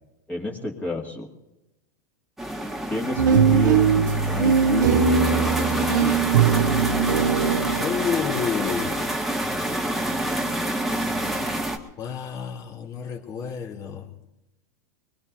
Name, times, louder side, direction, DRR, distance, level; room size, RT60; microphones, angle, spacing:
voice 1, 0.3-1.3 2.9-6.3, left 2 dB, 15° left, -1 dB, 2.4 m, -31 dB
sound 1, 2.4-11.8, right 1 dB, 5° right, 1.7 m, -28 dB
sound 2, 3.2-7.9, right 6 dB, 75° right, 0.9 m, -20 dB
voice 2, 7.8-9.1 12.0-14.1, left 7 dB, 40° left, 1 dB, 2.8 m, -29 dB
24.0 x 20.5 x 2.7 m, 0.92 s
hypercardioid pair, 105°, 10 cm